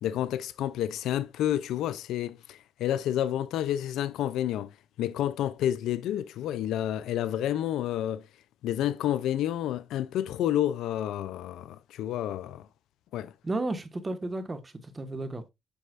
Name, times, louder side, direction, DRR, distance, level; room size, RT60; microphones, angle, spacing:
voice 1, 0.0-4.7 5.0-8.2 8.6-12.7 13.1-13.3, left 11 dB, 85° left, 0.5 m, -29 dB
voice 2, 13.4-15.5, right 2 dB, 25° right, 1.5 m, -33 dB
8.2 x 5.4 x 2.5 m
cardioid pair, 80°, 0 cm